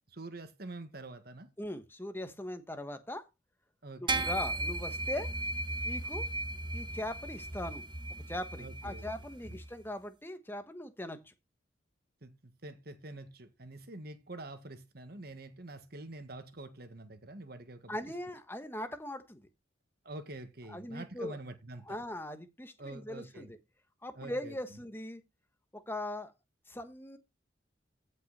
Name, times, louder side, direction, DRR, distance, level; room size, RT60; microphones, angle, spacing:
voice 1, 0.1-1.5 3.8-4.3 8.6-9.1 9.4-9.6 12.2-18.0 20.1-22.0 22.8-23.5 24.2-24.5, right 2 dB, 55° right, 1.7 m, -46 dB
voice 2, 1.6-3.3 4.0-5.3 5.8-6.3 6.7-7.8 8.3-11.3 17.9-19.4 20.7-21.4 21.8-23.6 24.0-25.2 25.7-26.3 26.7-27.2, left 1 dB, 10° left, 1.2 m, -40 dB
sound 1, 4.1-9.7, right 2 dB, 25° right, 1.1 m, -36 dB
15.0 x 5.7 x 4.2 m
head